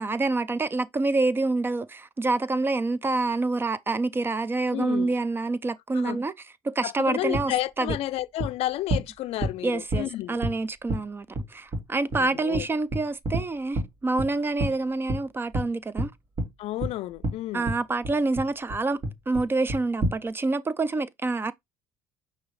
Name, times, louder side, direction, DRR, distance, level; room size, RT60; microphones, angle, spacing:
voice 1, 0.0-6.3 6.6-8.0 9.6-11.3 11.5-16.1 17.5-19.0 19.3-21.5, right 3 dB, 20° right, 0.4 m, -27 dB
voice 2, 4.7-5.1 5.9-6.2 6.8-10.4 12.1-12.7 16.6-17.7, left 15 dB, 60° left, 0.4 m, -31 dB
sound 1, 7.3-7.4 7.9-8.0 8.4-8.5 8.9-9.0 9.4-9.5 9.9-10.0 10.4-10.5 10.9-11.0 11.3-11.4 11.7-11.8 12.1-12.2 12.5-12.6 12.9-13.4 13.7-13.9 14.2-14.3 14.6-14.7 15.1-15.2 15.5-15.7 16.0-16.1 16.4-16.5 16.8-16.9 17.2-17.3 17.7-17.8 18.0-18.4 18.7-18.8 19.0-19.4 19.7-20.2, right 1 dB, 45° right, 1.8 m, -27 dB
6.0 x 2.7 x 3.1 m
supercardioid pair, 100°, 12 cm